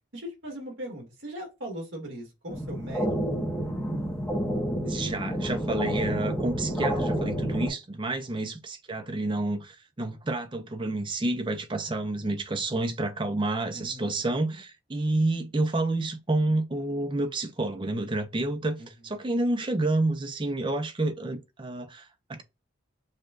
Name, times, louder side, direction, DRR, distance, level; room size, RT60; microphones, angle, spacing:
voice 1, 0.1-3.1 13.7-14.2 18.8-18.9, equal, 70° right, 1.8 m, -39 dB
sound 1, 2.5-7.7, right 1 dB, 10° left, 0.8 m, -29 dB
voice 2, 4.8-22.4, right 2 dB, 25° right, 0.5 m, -29 dB
6.5 x 2.3 x 2.5 m
head